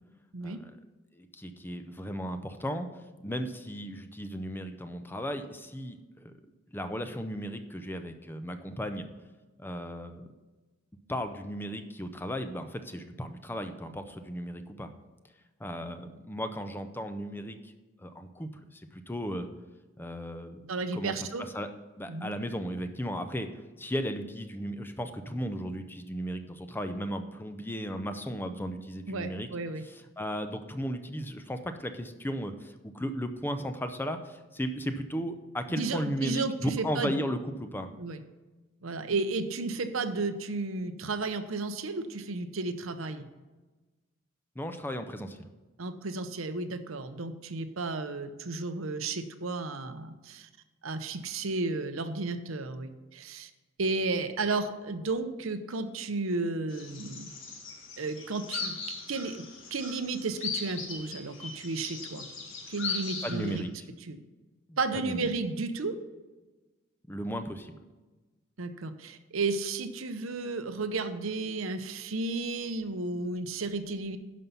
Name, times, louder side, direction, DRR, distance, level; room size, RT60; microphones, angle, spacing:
voice 1, 1.1-2.9 3.2-6.4 6.7-9.1 9.6-10.3 11.1-14.9 15.6-17.7 18.0-19.5 20.0-20.6 20.9-21.7 22.0-23.5 23.8-29.5 29.8-37.9 44.6-45.5 63.2-63.7 64.7-65.3 67.1-67.8, equal, 10° left, 8 dB, 0.6 m, -35 dB
voice 2, 20.7-21.5 22.1-22.3 29.1-29.8 35.7-37.2 38.0-38.2 38.8-43.3 45.8-50.5 50.8-53.5 53.8-57.3 58.0-58.8 59.1-59.4 59.7-62.3 62.7-63.6 64.1-64.2 64.8-65.9 68.6-74.2, right 3 dB, 85° right, 9 dB, 0.8 m, -33 dB
sound 1, 56.7-63.6, left 4 dB, 65° left, 1.7 m, -39 dB
11.0 x 5.5 x 5.7 m, 1.2 s
head